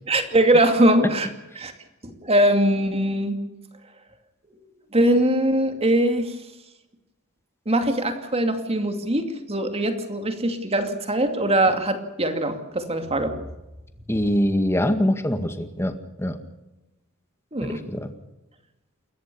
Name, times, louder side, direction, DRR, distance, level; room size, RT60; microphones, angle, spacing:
voice 1, 0.0-1.3 1.6-1.7 2.0-3.4 4.9-6.4 7.7-13.4 14.1-14.2 17.5-17.8, right 1 dB, 30° right, 6 dB, 2.5 m, -21 dB
voice 2, 14.1-15.9 16.2-16.4 17.6-18.1, equal, 10° left, 7 dB, 1.9 m, -23 dB
29.0 x 14.0 x 7.1 m, 0.99 s
head